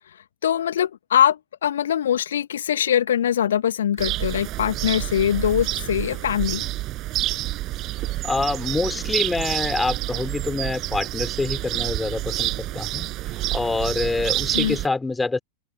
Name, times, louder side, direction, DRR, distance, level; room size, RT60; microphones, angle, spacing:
voice 1, 0.1-6.6 14.5-14.8, left 9 dB, 65° left, 1.7 m, -22 dB
sound 1, 4.0-14.9, right 16 dB, 35° right, 6.5 m, -28 dB
voice 2, 8.2-15.4, left 3 dB, 10° left, 5.2 m, -26 dB
open air
figure-of-eight pair, 90°, 0 cm